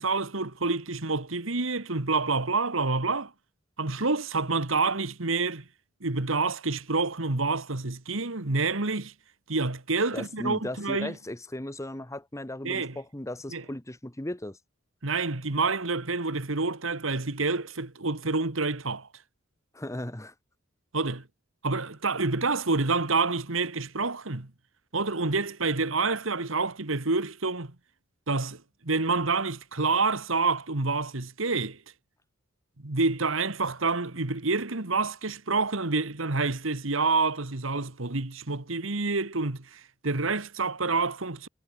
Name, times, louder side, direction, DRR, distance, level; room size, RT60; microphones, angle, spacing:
voice 1, 0.0-3.3 3.8-5.7 6.0-9.1 9.5-11.1 12.6-13.0 13.5-13.6 15.0-19.1 20.9-21.3 21.6-24.5 24.9-27.8 28.3-31.8 32.8-41.5, right 3 dB, 75° right, 1.9 m, -28 dB
voice 2, 10.1-14.6 19.7-20.3, left 1 dB, 15° left, 1.3 m, -36 dB
head